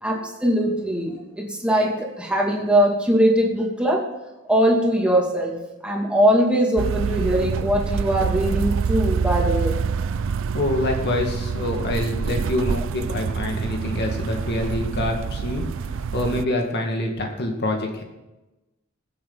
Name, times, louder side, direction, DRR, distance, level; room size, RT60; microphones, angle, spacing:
voice 1, 0.0-4.0 4.5-5.5 5.8-9.8, equal, 5° right, -2 dB, 2.4 m, -21 dB
sound 1, 6.8-16.5, right 6 dB, 65° right, 0.4 m, -26 dB
voice 2, 10.4-15.7 16.1-18.0, left 1 dB, 55° left, 2 dB, 1.9 m, -26 dB
22.5 x 7.7 x 4.0 m, 1.0 s
head